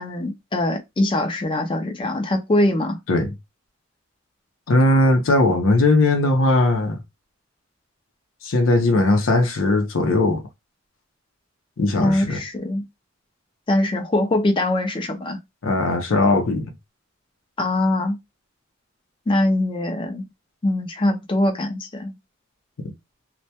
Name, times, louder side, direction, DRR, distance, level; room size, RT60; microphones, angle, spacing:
voice 1, 0.0-3.0 12.0-12.8 13.7-15.4 17.6-18.2 19.3-20.2 20.6-22.1, left 1 dB, 25° left, 0.4 m, -22 dB
voice 2, 4.7-7.0 8.4-10.4 11.8-12.4 15.6-16.7, left 2 dB, 80° left, 0.6 m, -18 dB
2.2 x 2.1 x 2.7 m
head